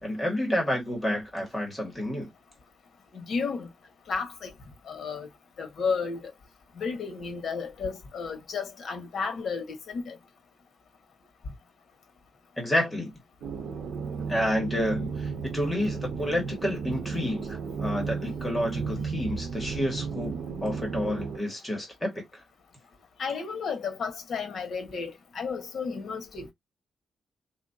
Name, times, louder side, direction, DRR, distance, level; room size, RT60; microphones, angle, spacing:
voice 1, 0.0-2.3 12.6-13.1 14.3-22.2, left 1 dB, 10° left, 1.7 m, -29 dB
voice 2, 3.1-3.7 4.1-4.5 4.9-5.3 5.6-6.2 6.8-10.2 23.2-26.5, left 5 dB, 60° left, 1.3 m, -32 dB
sound 1, 13.4-21.4, right 5 dB, 80° right, 0.9 m, -34 dB
4.2 x 2.8 x 2.7 m
wide cardioid pair, 135°, 0 cm